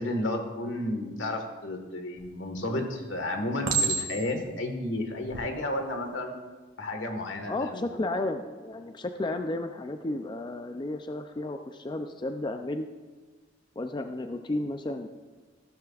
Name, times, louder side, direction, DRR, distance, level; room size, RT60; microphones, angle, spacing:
voice 1, 0.0-6.3 6.8-7.9, left 1 dB, 80° left, 4 dB, 1.6 m, -32 dB
Chink clink, 2.2-2.7 3.6-4.4 5.2-5.5, right 4 dB, 75° right, 1.8 m, -29 dB
voice 2, 7.5-12.9 13.8-15.1, left 2 dB, 25° left, 6 dB, 0.4 m, -33 dB
15.0 x 12.5 x 2.4 m, 1.3 s
head